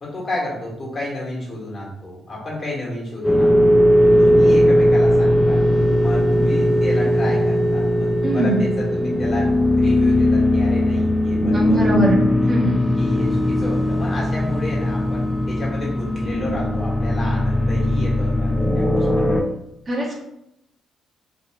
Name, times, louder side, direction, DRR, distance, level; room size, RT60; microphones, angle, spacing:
voice 1, 0.0-3.8 4.0-5.6 6.0-9.5 9.8-12.5 13.0-19.4, left 1 dB, 35° left, -5 dB, 1.4 m, -31 dB
sound 1, 3.2-19.4, left 1 dB, 10° left, 0.4 m, -18 dB
voice 2, 8.2-8.6 11.4-12.2 12.5-12.7 19.9-20.2, right 1 dB, 30° right, -3 dB, 1.1 m, -20 dB
2.8 x 2.7 x 2.8 m, 0.82 s
cardioid pair, 90°, 0 cm